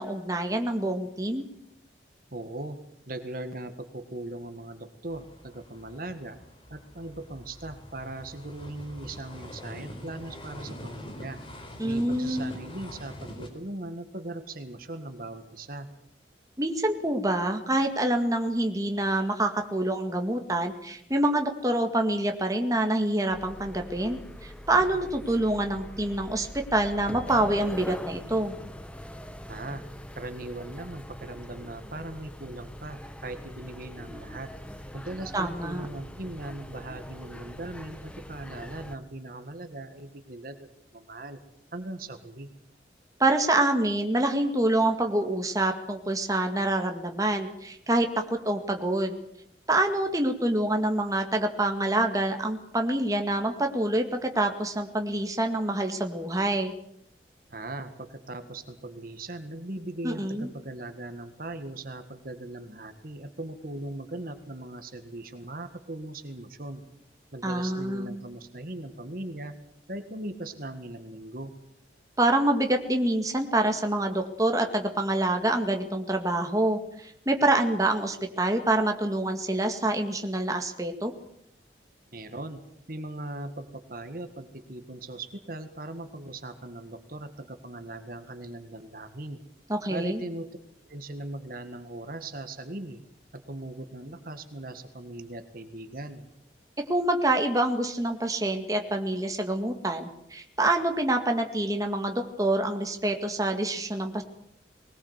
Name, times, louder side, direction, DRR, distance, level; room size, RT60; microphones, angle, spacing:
voice 1, 0.0-1.5 11.8-12.6 16.6-28.5 35.3-35.9 43.2-49.2 49.7-56.7 60.0-60.5 67.4-68.2 72.2-81.1 89.7-90.2 96.9-104.2, right 1 dB, 20° right, 4 dB, 2.0 m, -26 dB
voice 2, 2.3-2.8 3.1-6.4 6.7-11.4 11.8-15.9 29.5-29.8 30.2-34.5 34.9-41.4 41.7-42.5 57.5-66.8 67.3-69.5 69.9-71.5 82.1-82.6 82.9-89.4 89.9-90.5 90.9-93.0 93.5-96.3, right 2 dB, 50° right, 8 dB, 1.8 m, -39 dB
sound 1, 5.1-13.5, left 1 dB, 30° left, 4.1 m, -44 dB
sound 2, 23.3-39.0, equal, 5° left, 1.1 m, -42 dB
21.0 x 19.5 x 8.1 m, 0.73 s
head